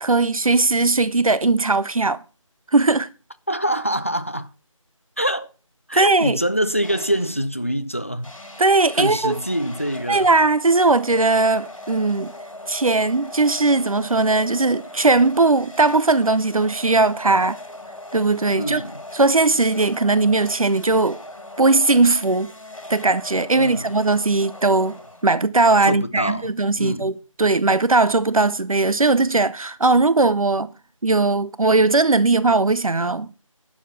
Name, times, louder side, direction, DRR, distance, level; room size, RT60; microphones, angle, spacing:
voice 1, 0.0-2.2 2.7-3.1 5.9-6.4 8.6-9.3 10.1-12.3 12.7-17.6 18.1-18.8 19.1-21.2 21.6-22.5 22.9-25.0 25.2-27.1 27.4-30.7 31.0-33.3, right 3 dB, 80° right, 0.7 m, -18 dB
voice 2, 3.5-4.5 5.2-5.5 5.9-8.3 8.9-10.3 18.5-19.0 23.5-23.9 25.8-26.5 26.8-27.1, equal, 25° left, 0.5 m, -25 dB
sound 1, 6.8-7.5 8.2-25.6, left 1 dB, 70° left, 2.9 m, -40 dB
11.5 x 7.3 x 5.8 m
figure-of-eight pair, 170°, 17 cm